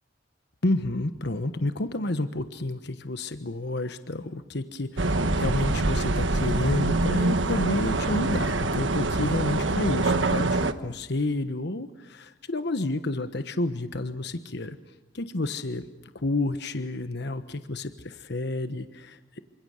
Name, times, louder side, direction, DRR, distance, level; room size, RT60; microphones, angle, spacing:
voice 1, 0.6-14.8 15.1-15.8 16.2-19.4, left 2 dB, 65° left, 9 dB, 1.3 m, -30 dB
sound 1, 5.0-10.7, right 2 dB, 80° right, 1.4 m, -25 dB
28.0 x 26.0 x 6.6 m, 1.1 s
head